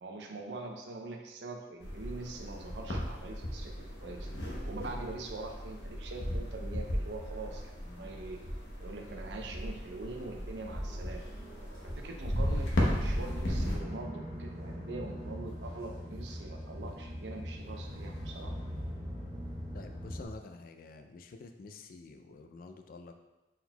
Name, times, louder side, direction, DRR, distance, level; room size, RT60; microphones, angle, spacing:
voice 1, 0.0-3.7 4.0-4.3 4.6-8.4 8.8-11.2 11.8-18.5, right 2 dB, 75° right, 3 dB, 0.5 m, -43 dB
sound 1, 1.8-13.8, equal, 85° left, 0.8 m, -35 dB
sound 2, 10.8-20.3, equal, 20° right, 1.5 m, -42 dB
voice 2, 19.7-23.2, left 3 dB, 50° left, 6 dB, 0.3 m, -49 dB
4.3 x 3.9 x 2.2 m, 1.1 s
head